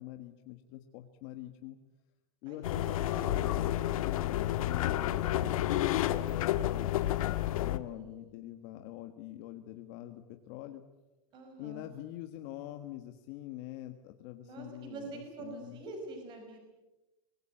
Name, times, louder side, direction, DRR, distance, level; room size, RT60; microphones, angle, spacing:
voice 1, 0.0-1.8 2.4-7.0 7.3-10.8 11.6-15.8, left 14 dB, 40° left, 6 dB, 1.4 m, -45 dB
voice 2, 2.5-3.5 7.9-8.4 11.3-11.9 14.4-16.6, right 2 dB, 25° right, 4 dB, 5.3 m, -46 dB
sound 1, 2.6-7.8, left 13 dB, 70° left, 1.5 m, -30 dB
24.5 x 20.5 x 9.0 m, 1.0 s
supercardioid pair, 175°, 18 cm